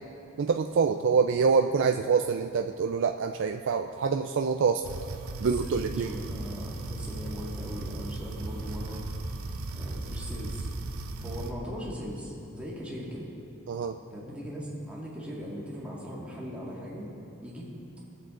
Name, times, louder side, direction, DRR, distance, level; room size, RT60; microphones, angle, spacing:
voice 1, 0.4-4.9 5.4-6.1 13.7-14.0, right 5 dB, 55° right, 5 dB, 0.3 m, -26 dB
sound 1, 4.8-11.5, right 2 dB, 75° right, 0.8 m, -37 dB
voice 2, 5.4-9.2 9.7-10.7 11.2-13.3 14.1-17.1 17.4-18.0, equal, 5° right, -5 dB, 1.9 m, -39 dB
19.5 x 7.4 x 3.8 m, 2.6 s
head